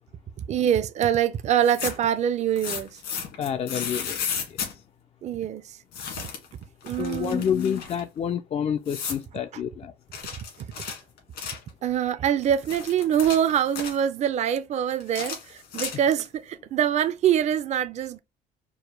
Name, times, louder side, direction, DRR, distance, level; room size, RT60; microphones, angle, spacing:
voice 1, 0.5-3.0 5.2-5.8 6.8-7.5 10.6-10.7 11.8-18.2, right 9 dB, 45° right, 0.4 m, -24 dB
sound 1, 1.5-2.1 2.6-4.7 5.9-6.5 6.8-8.0 8.9-9.2 10.1-11.7 12.4-14.0 15.0-16.3, left 6 dB, 75° left, 1.9 m, -34 dB
voice 2, 3.4-4.2 7.0-9.9, left 8 dB, 35° left, 0.3 m, -28 dB
4.8 x 2.2 x 3.2 m
cardioid pair, 110°, 17 cm